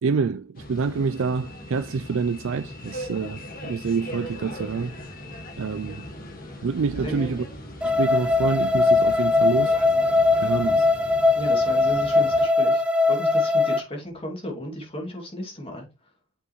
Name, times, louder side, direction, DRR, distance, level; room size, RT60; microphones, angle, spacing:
voice 1, 0.0-4.9 5.6-6.1 6.6-7.5 7.8-9.8 10.4-10.9, right 5 dB, 70° right, 0.4 m, -27 dB
sound 1, 0.5-12.5, left 1 dB, 40° left, 1.8 m, -39 dB
voice 2, 7.0-7.4 10.7-10.8 11.3-15.9, equal, 25° left, 2.5 m, -34 dB
sound 2, 7.8-13.8, left 3 dB, 5° right, 0.6 m, -20 dB
8.4 x 5.6 x 3.1 m
head